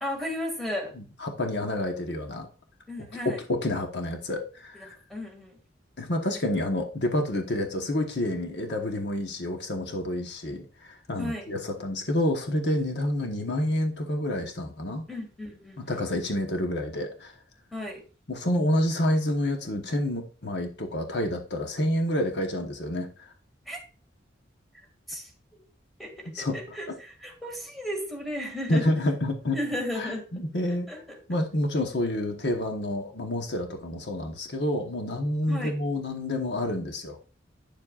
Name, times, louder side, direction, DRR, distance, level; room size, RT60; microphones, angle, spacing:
voice 1, 0.0-0.9 2.9-3.4 4.7-5.6 11.2-11.5 15.1-16.0 17.7-18.0 23.7-23.8 25.1-25.6 26.0-28.8 29.5-30.4 30.7-31.2 35.5-35.8, left 1 dB, ahead, 1 dB, 2.1 m, -35 dB
voice 2, 1.0-2.5 3.2-4.9 6.0-15.1 15.8-17.4 18.3-23.3 26.3-26.6 28.7-29.6 29.9-30.9 31.3-37.2, left 1 dB, 60° left, 4 dB, 1.1 m, -28 dB
9.5 x 7.2 x 2.4 m, 0.37 s
head